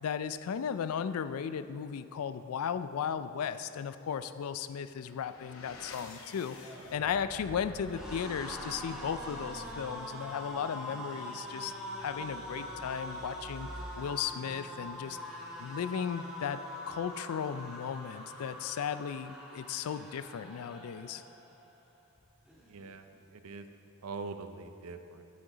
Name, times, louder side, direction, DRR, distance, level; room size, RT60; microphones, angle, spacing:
voice 1, 0.0-11.7 12.0-13.7 14.0-15.2 15.6-21.2, left 7 dB, 80° left, 12 dB, 0.4 m, -36 dB
sound 1, 4.7-15.4, left 1 dB, 65° left, 0.8 m, -50 dB
sound 2, 6.5-21.6 22.0-22.2 22.5-23.3, equal, 5° right, 1.4 m, -44 dB
voice 2, 22.6-23.7 24.0-25.2, right 4 dB, 85° right, 8 dB, 0.5 m, -43 dB
8.7 x 8.3 x 3.9 m, 2.6 s
head